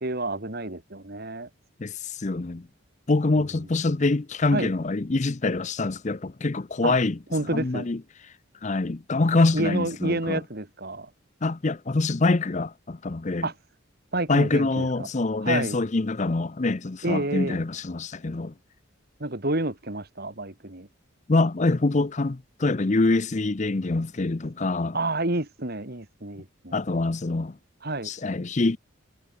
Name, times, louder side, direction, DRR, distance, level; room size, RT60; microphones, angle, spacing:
voice 1, 0.0-1.5 4.5-4.7 6.8-7.0 7.3-7.9 9.5-11.1 13.4-13.5 14.1-15.1 15.4-15.8 17.0-17.6 19.2-20.9 24.9-26.8 27.8-28.1, right 2 dB, 50° right, 2.3 m, -29 dB
voice 2, 1.8-2.7 3.1-7.2 7.5-8.0 8.6-10.4 11.4-13.5 14.3-18.5 21.3-25.0 26.7-27.6 28.0-28.8, left 3 dB, 35° left, 0.6 m, -25 dB
head